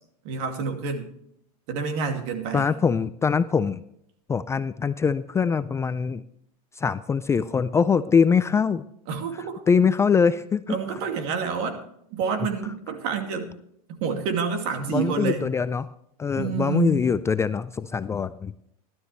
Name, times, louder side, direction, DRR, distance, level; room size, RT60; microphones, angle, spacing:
voice 1, 0.2-1.1 1.7-2.7 9.1-9.6 10.7-11.8 12.1-13.5 13.9-15.5 16.4-17.0, right 5 dB, 60° right, 5 dB, 2.5 m, -28 dB
voice 2, 2.5-3.8 4.3-6.2 6.7-8.8 9.3-10.8 14.9-15.9 16.2-18.5, left 6 dB, 15° left, 13 dB, 0.4 m, -23 dB
16.5 x 12.0 x 3.3 m, 0.70 s
supercardioid pair, 130°, 19 cm